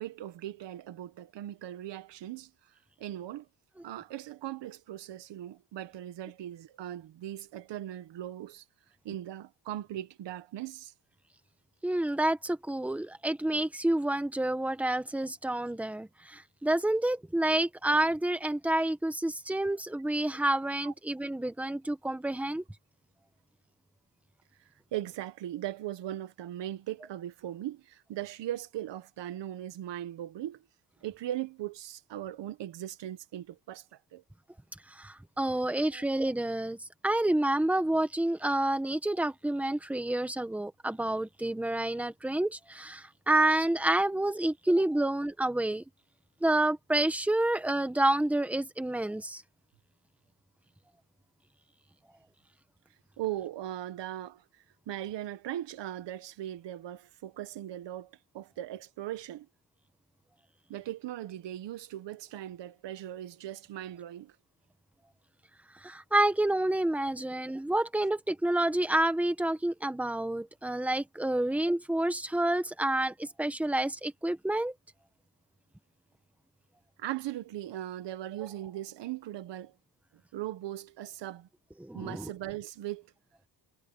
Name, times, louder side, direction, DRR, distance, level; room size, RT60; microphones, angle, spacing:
voice 1, 0.0-2.5 3.0-3.5 3.8-8.6 9.0-10.9 20.8-20.9 24.9-30.6 31.0-33.8 34.1-34.2 35.9-36.0 45.0-45.1 53.2-54.4 54.9-59.5 60.7-64.4 77.0-79.7 80.3-81.5 81.9-83.1, right 13 dB, 90° right, 1.6 m, -39 dB
voice 2, 11.8-22.6 34.9-36.8 37.0-45.8 46.4-49.4 65.8-74.7 81.8-82.3, right 1 dB, 5° right, 1.5 m, -29 dB
cardioid pair, 165°, 42 cm